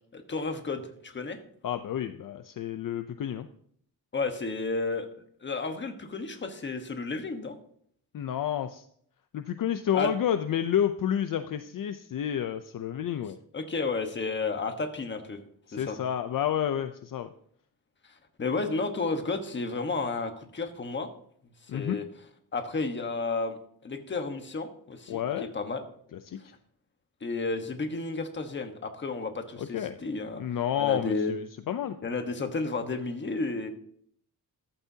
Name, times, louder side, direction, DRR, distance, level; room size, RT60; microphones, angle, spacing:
voice 1, 0.1-1.4 4.1-5.1 5.4-7.6 9.9-10.1 13.5-15.4 15.7-16.0 18.0-21.1 21.7-22.0 22.5-25.2 25.5-25.8 27.2-30.4 30.8-31.3 32.0-33.7, left 3 dB, 30° left, 6 dB, 1.3 m, -32 dB
voice 2, 1.6-3.5 8.1-8.8 9.3-13.4 15.7-17.3 21.7-22.0 25.1-25.5 26.1-26.4 29.6-30.0 30.4-32.0, left 9 dB, 55° left, 9 dB, 0.6 m, -30 dB
14.5 x 12.0 x 2.8 m, 0.64 s
wide cardioid pair, 175°, 39 cm